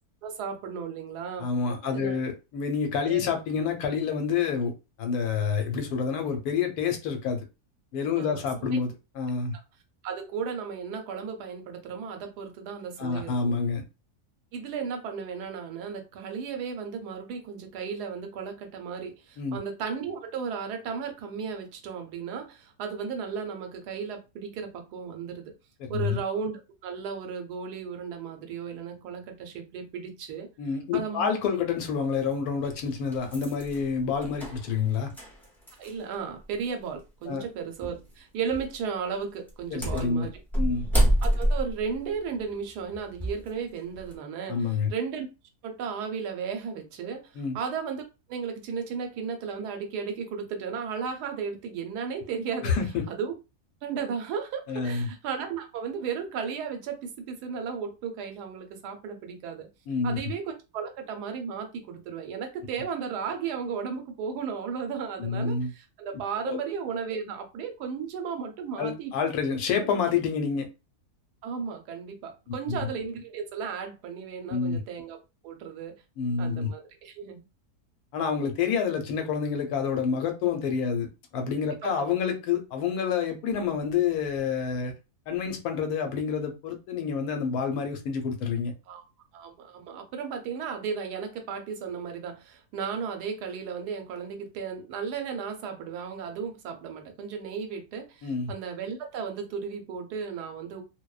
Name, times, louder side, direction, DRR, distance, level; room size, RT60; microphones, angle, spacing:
voice 1, 0.2-1.5 1.8-2.2 3.1-3.3 8.2-8.4 10.0-13.5 14.5-25.5 25.9-30.5 30.9-31.3 35.8-40.3 41.2-45.3 45.6-48.0 48.3-52.8 53.1-53.3 53.8-59.7 60.0-69.1 71.4-75.2 75.4-75.9 76.4-77.4 81.8-81.9 88.9-89.0 89.3-100.8, right 6 dB, 85° right, 1.2 m, -35 dB
voice 2, 1.4-4.7 5.0-7.4 7.9-9.6 13.0-13.8 19.4-19.6 25.9-26.2 30.6-35.1 37.3-37.5 39.7-40.3 40.6-40.9 44.5-44.9 47.4-47.6 52.6-53.0 54.7-55.1 59.9-60.2 65.2-65.7 66.4-66.6 68.8-70.7 72.5-72.8 74.5-74.8 76.2-76.7 78.1-81.1 81.3-84.9 85.3-88.7 98.2-98.5, left 6 dB, 75° left, 1.1 m, -28 dB
sound 1, 31.8-31.9 32.6-36.1 36.4-36.5 37.8-38.1 38.5-38.8 39.5-43.5 43.9-44.2, right 1 dB, 5° left, 0.3 m, -28 dB
2.5 x 2.1 x 2.3 m
omnidirectional pair, 1.7 m